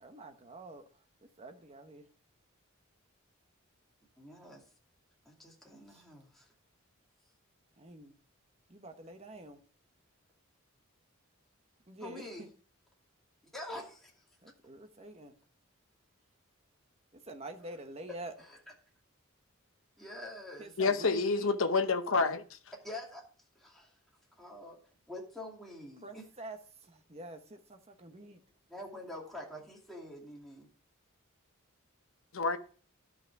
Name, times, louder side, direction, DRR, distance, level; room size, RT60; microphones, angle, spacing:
voice 1, 0.0-0.8 1.2-2.1 5.9-6.0 7.8-8.1 8.7-9.6 11.9-12.5 14.4-15.4 17.3-18.3 20.6-21.5 26.0-26.6 26.8-28.4, right 1 dB, 30° right, 1.2 m, -47 dB
voice 2, 4.2-4.6 5.2-6.5 12.0-12.5 13.5-14.2 17.6-17.8 18.4-18.6 20.0-20.7 22.8-23.2 23.5-23.9 24.4-24.8 25.1-26.3 28.7-30.7, left 1 dB, ahead, 2.5 m, -46 dB
voice 3, 20.8-22.6 32.3-32.6, left 4 dB, 65° left, 0.9 m, -28 dB
12.0 x 5.8 x 4.6 m
head